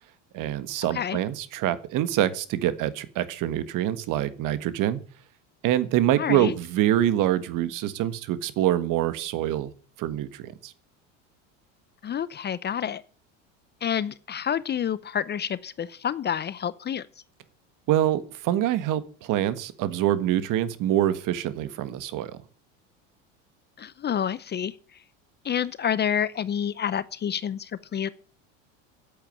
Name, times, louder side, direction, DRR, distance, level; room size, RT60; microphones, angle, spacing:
voice 1, 0.3-5.0 5.6-9.7 10.0-10.7 17.9-22.3, right 12 dB, 55° right, 1.6 m, -25 dB
voice 2, 6.2-6.5 12.0-13.0 13.8-17.1 23.8-25.0 25.4-28.1, left 8 dB, 30° left, 0.7 m, -28 dB
8.7 x 8.5 x 9.5 m
supercardioid pair, 105°, 37 cm